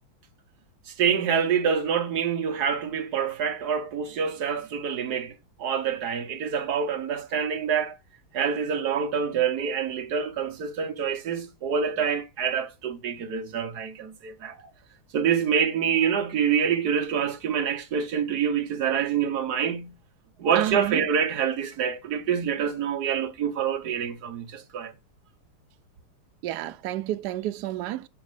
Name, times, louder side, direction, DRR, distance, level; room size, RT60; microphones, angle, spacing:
voice 1, 0.9-8.0 8.3-14.7 15.1-19.9 20.4-24.9, right 7 dB, 60° right, 1.2 m, -26 dB
voice 2, 20.6-21.1 26.4-28.1, right 14 dB, 75° right, 0.9 m, -30 dB
6.2 x 5.4 x 4.8 m
omnidirectional pair, 2.3 m